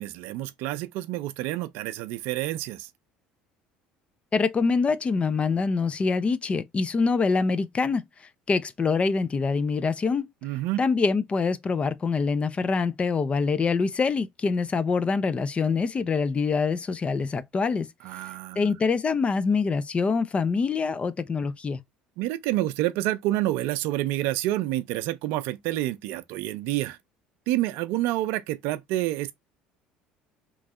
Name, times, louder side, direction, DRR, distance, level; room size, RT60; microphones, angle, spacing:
voice 1, 0.0-2.9 10.4-10.8 18.0-18.7 22.2-27.0 27.5-29.3, right 15 dB, 70° right, 0.4 m, -28 dB
voice 2, 4.3-8.0 8.5-10.3 10.8-17.9 18.6-21.8, left 4 dB, 30° left, 0.5 m, -25 dB
3.0 x 2.7 x 3.6 m
hypercardioid pair, 70°, 4 cm